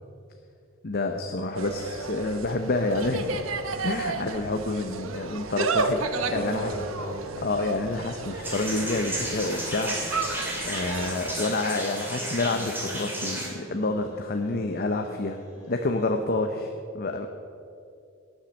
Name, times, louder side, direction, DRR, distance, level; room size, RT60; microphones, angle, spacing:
voice 1, 0.8-3.5 3.8-6.0 6.3-6.7 7.4-15.4 15.7-17.3, left 2 dB, 50° left, 5 dB, 0.8 m, -28 dB
Insect, 1.5-11.3, right 3 dB, 85° right, 0.9 m, -32 dB
sound 1, 5.1-16.1, left 1 dB, 85° left, 3.1 m, -46 dB
voice 2, 6.1-7.3, equal, 30° left, -4 dB, 3.2 m, -34 dB
sound 2, 8.4-13.5, right 1 dB, 10° right, 3.2 m, -33 dB
17.5 x 7.4 x 6.5 m, 2.5 s
head